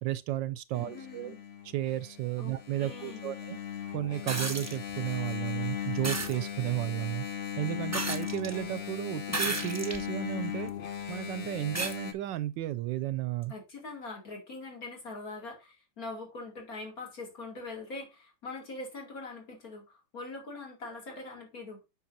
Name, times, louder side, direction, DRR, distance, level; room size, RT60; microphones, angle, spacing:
voice 1, 0.0-1.4 1.6-3.6 3.9-7.3 7.6-10.7 11.1-13.5, right 14 dB, 75° right, 1.2 m, -33 dB
Engine, 0.7-12.1, left 9 dB, 65° left, 0.6 m, -38 dB
voice 2, 0.7-1.4 2.4-3.4 13.5-21.8, left 3 dB, 50° left, 3.0 m, -43 dB
sound 1, 4.3-4.8 6.0-6.4 7.9-8.5 9.3-10.0 10.7-10.8 11.8-12.0 13.4-13.5, right 2 dB, 15° right, 0.5 m, -33 dB
8.4 x 6.2 x 2.7 m
omnidirectional pair, 2.1 m